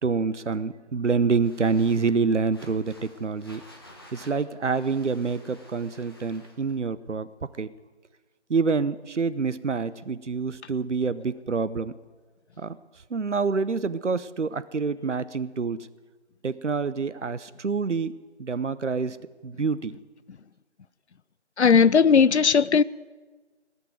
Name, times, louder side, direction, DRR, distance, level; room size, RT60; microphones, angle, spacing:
voice 1, 0.0-3.6 4.1-7.3 7.6-7.7 8.5-11.9 12.6-12.8 13.1-15.9 16.4-18.1 18.4-19.2 19.4-20.0, right 4 dB, 80° right, 0.8 m, -27 dB
sound 1, 1.4-6.8, left 1 dB, 20° left, 1.2 m, -52 dB
voice 2, 21.6-22.8, left 6 dB, 70° left, 0.5 m, -17 dB
18.5 x 6.8 x 9.3 m
figure-of-eight pair, 165°, 35 cm